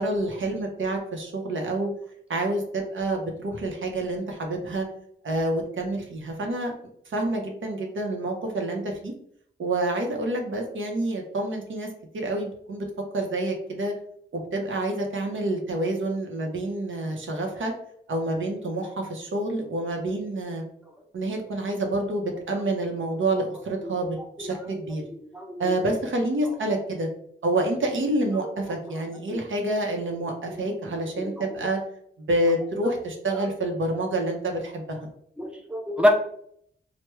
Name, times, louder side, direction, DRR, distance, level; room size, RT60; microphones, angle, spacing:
voice 1, 0.0-1.9 2.3-4.9 5.2-6.7 7.1-9.1 9.6-11.9 12.1-12.9 13.1-13.9 14.3-17.7 18.1-20.6 21.1-25.0 25.6-27.1 27.4-31.8 32.2-35.0, right 1 dB, 80° right, 2 dB, 0.7 m, -28 dB
voice 2, 24.4-24.8 25.1-25.9 28.4-28.5 30.5-30.7 31.2-31.5 33.3-33.5 35.4-36.1, left 1 dB, 5° right, 2 dB, 0.5 m, -28 dB
3.3 x 2.1 x 3.1 m, 0.68 s
wide cardioid pair, 80°, 20 cm